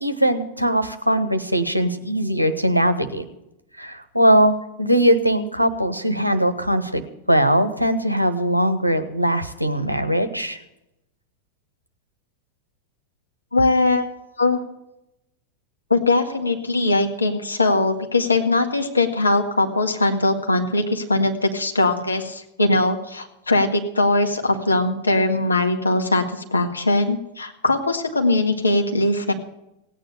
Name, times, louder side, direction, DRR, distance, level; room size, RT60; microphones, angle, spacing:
voice 1, 0.0-3.2 3.8-7.0 7.3-10.6, right 1 dB, 90° right, 12 dB, 1.1 m, -20 dB
voice 2, 13.5-14.0 14.4-14.6 15.9-29.3, left 2 dB, 80° left, 5 dB, 1.7 m, -20 dB
17.0 x 9.1 x 6.9 m, 0.86 s
figure-of-eight pair, 90°, 0 cm